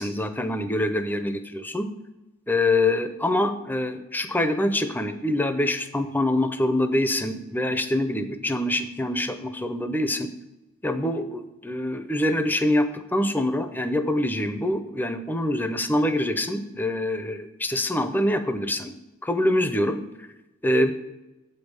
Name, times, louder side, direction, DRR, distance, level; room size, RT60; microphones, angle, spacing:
voice 1, 0.0-1.9 2.5-10.3 10.8-18.9 19.2-20.0 20.6-20.9, left 1 dB, 10° left, 8 dB, 0.5 m, -25 dB
7.7 x 5.3 x 6.2 m, 0.99 s
head